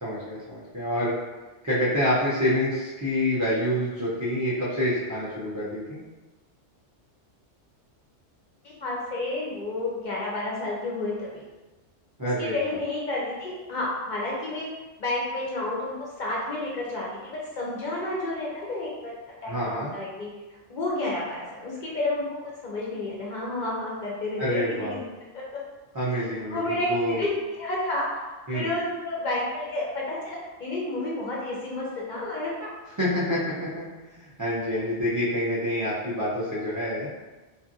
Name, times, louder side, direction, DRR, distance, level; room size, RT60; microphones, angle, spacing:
voice 1, 0.0-1.2 1.6-6.0 12.2-12.6 19.4-19.9 24.4-24.9 25.9-27.2 28.5-28.7 33.0-37.1, equal, 30° right, -10 dB, 0.3 m, -27 dB
voice 2, 8.6-11.3 12.2-14.7 15.0-19.1 19.4-20.3 20.7-25.0 26.5-28.2 28.5-32.7, left 2 dB, 55° left, -5 dB, 0.6 m, -30 dB
2.8 x 2.5 x 2.5 m, 1.2 s
omnidirectional pair, 1.2 m